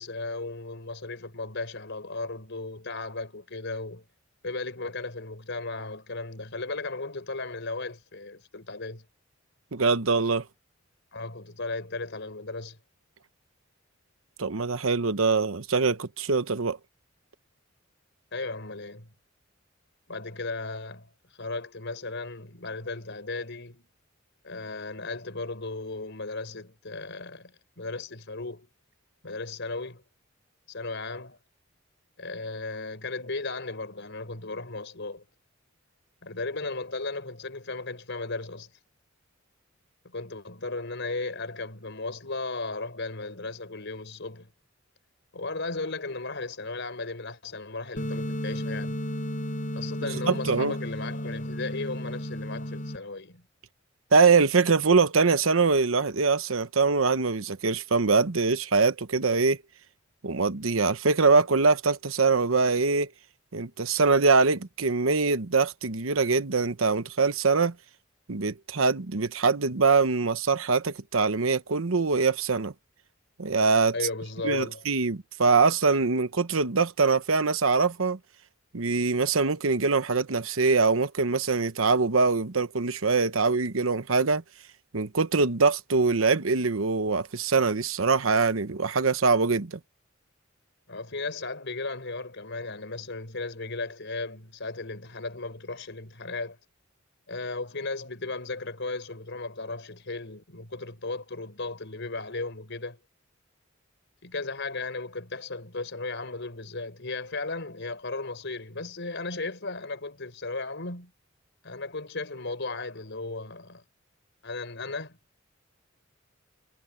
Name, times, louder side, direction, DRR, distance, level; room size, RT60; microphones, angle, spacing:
voice 1, 0.0-4.0 4.4-9.0 11.1-12.8 18.3-19.1 20.1-23.9 24.4-28.7 29.2-30.0 30.7-31.4 32.2-35.2 36.2-38.7 40.0-44.5 45.3-49.0 49.7-53.5 73.9-74.8 90.9-96.6 97.3-103.0 104.2-111.1 111.6-113.8 114.4-115.2, left 3 dB, 60° left, 5.0 m, -35 dB
voice 2, 9.7-10.4 14.4-16.8 50.3-50.7 54.1-59.6 60.2-63.1 63.5-67.7 68.3-72.7 73.4-73.9 74.4-78.2 78.7-84.4 84.9-89.8, right 4 dB, 90° right, 1.0 m, -23 dB
sound 1, 48.0-53.0, equal, 40° left, 6.6 m, -33 dB
head